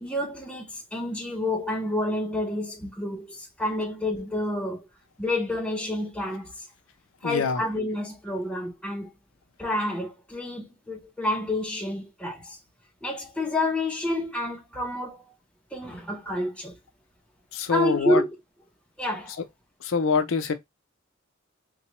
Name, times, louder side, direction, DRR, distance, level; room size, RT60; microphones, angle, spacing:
voice 1, 0.0-4.9 5.2-6.7 7.2-9.1 9.6-12.6 13.0-15.2 15.7-16.8 17.7-18.3 19.0-19.4, left 1 dB, 5° left, 0.7 m, -29 dB
voice 2, 7.2-7.6 17.5-18.2 19.8-20.5, left 5 dB, 85° left, 0.5 m, -25 dB
3.8 x 2.2 x 2.9 m
head